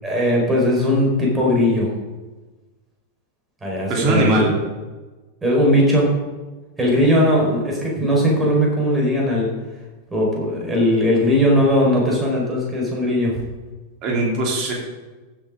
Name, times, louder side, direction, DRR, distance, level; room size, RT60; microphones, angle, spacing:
voice 1, 0.0-1.9 3.6-4.4 5.4-6.1 6.8-9.5 10.1-13.4, equal, 15° right, -2 dB, 4.4 m, -18 dB
voice 2, 3.9-4.6 14.0-14.7, right 2 dB, 40° right, -1 dB, 3.2 m, -20 dB
15.0 x 8.7 x 3.7 m, 1.2 s
figure-of-eight pair, 90°, 0 cm